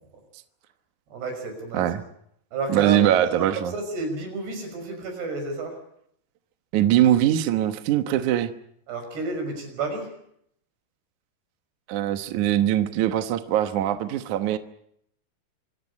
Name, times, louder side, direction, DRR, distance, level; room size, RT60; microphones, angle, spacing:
voice 1, 1.1-1.8 2.5-5.8 8.9-10.1, right 3 dB, 80° right, 5 dB, 8.0 m, -31 dB
voice 2, 2.7-3.7 6.7-8.5 11.9-14.6, right 11 dB, 65° right, 10 dB, 2.1 m, -22 dB
26.5 x 15.5 x 9.7 m, 0.71 s
omnidirectional pair, 4.7 m